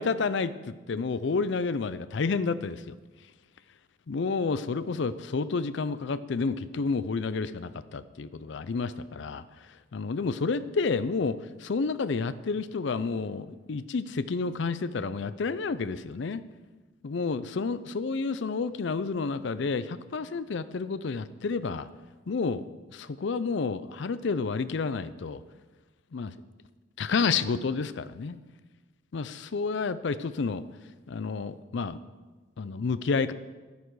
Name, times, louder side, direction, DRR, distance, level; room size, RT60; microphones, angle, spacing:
voice 1, 0.0-2.9 4.1-9.7 9.9-16.4 17.0-21.9 22.3-22.6 22.9-25.4 26.1-26.3 27.0-28.4 29.1-30.6 31.1-32.0 32.6-33.3, left 4 dB, 60° left, 14 dB, 0.4 m, -30 dB
10.0 x 10.0 x 4.8 m, 1.3 s
head